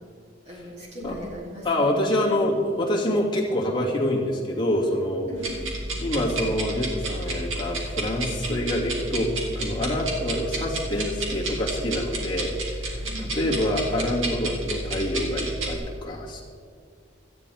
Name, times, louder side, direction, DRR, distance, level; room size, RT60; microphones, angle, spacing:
voice 1, 0.5-1.9 5.3-5.6 13.0-13.4, left 1 dB, 35° right, -3 dB, 3.8 m, -39 dB
voice 2, 1.6-5.3 6.0-12.9 13.4-16.4, left 1 dB, 25° left, -4 dB, 2.6 m, -26 dB
sound 1, 5.4-15.8, right 1 dB, 85° right, 2.6 m, -31 dB
17.5 x 13.5 x 3.6 m, 2.2 s
head